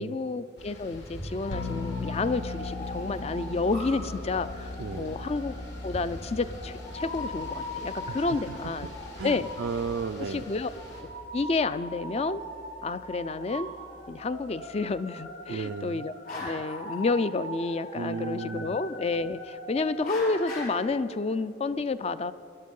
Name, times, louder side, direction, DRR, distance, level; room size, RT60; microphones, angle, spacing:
voice 1, 0.0-5.5 5.8-8.9 9.2-9.5 10.3-10.7 11.3-12.4 12.8-13.7 14.1-22.3, left 3 dB, 35° left, 14 dB, 0.4 m, -30 dB
sound 1, 0.6-11.0, left 1 dB, 65° left, 3.0 m, -44 dB
sound 2, 1.3-20.7, left 1 dB, 50° left, 4.7 m, -41 dB
sound 3, 1.5-14.9, left 3 dB, 80° left, 1.1 m, -41 dB
voice 2, 4.8-5.2 8.1-10.4 15.5-16.1 17.9-18.7, right 5 dB, 75° right, 7 dB, 0.4 m, -35 dB
22.5 x 11.5 x 5.4 m, 2.9 s
head